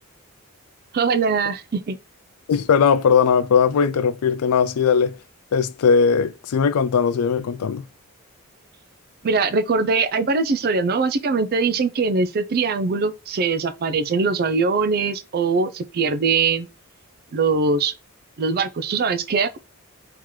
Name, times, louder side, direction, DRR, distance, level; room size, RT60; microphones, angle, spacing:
voice 1, 0.9-2.0 9.2-16.7 17.3-17.9 18.4-19.6, right 4 dB, 45° right, 0.4 m, -22 dB
voice 2, 2.5-5.2 5.5-7.9, left 6 dB, 80° left, 0.4 m, -19 dB
3.7 x 2.9 x 3.0 m
head